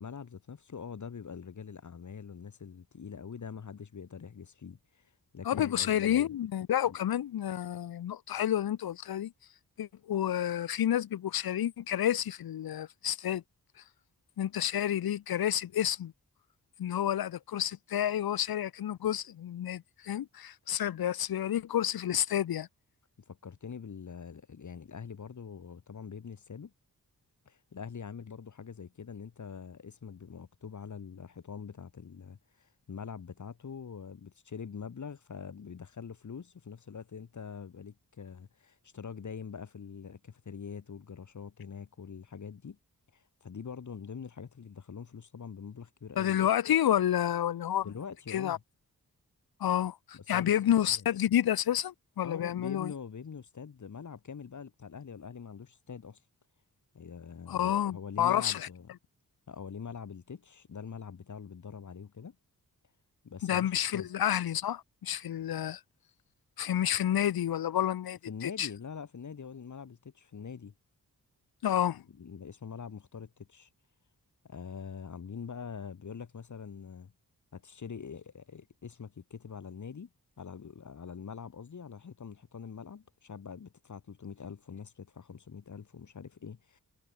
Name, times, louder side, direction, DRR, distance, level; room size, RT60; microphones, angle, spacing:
voice 1, 0.0-6.4 6.9-7.0 23.3-26.7 27.5-42.8 43.1-46.4 47.8-48.6 50.1-50.5 50.9-51.1 52.2-56.2 56.9-58.9 59.5-62.4 63.2-64.1 68.3-70.7 72.2-73.7 74.4-77.1 77.5-80.1 80.4-86.8, left 6 dB, 55° left, 1.9 m, -44 dB
voice 2, 5.4-9.3 9.8-13.4 13.8-13.9 14.4-16.1 16.8-22.7 46.2-47.9 48.3-48.6 49.6-52.9 57.5-58.7 63.4-65.8 66.6-68.7 71.6-72.0, left 11 dB, 85° left, 0.8 m, -30 dB
wide cardioid pair, 105°, 35 cm